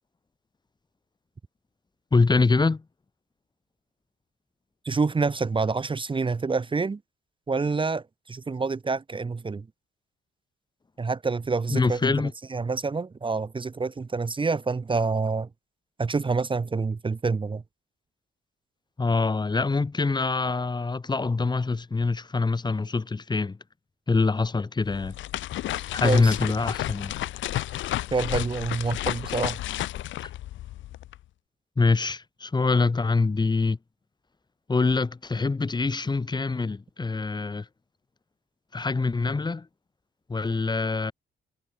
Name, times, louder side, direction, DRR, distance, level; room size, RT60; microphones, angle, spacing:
voice 1, 2.1-2.8 11.7-12.3 19.0-23.6 24.1-25.1 25.9-27.1 31.8-33.8 34.7-37.6 38.7-39.7 40.3-41.1, left 3 dB, 20° left, 1.4 m, -24 dB
voice 2, 4.8-7.0 7.5-9.7 11.0-12.1 12.5-15.5 16.0-17.6 26.0-26.3 28.1-29.6, right 4 dB, 25° right, 1.2 m, -27 dB
sound 1, 24.8-31.2, left 14 dB, 70° left, 0.6 m, -32 dB
cardioid pair, 90°, 20 cm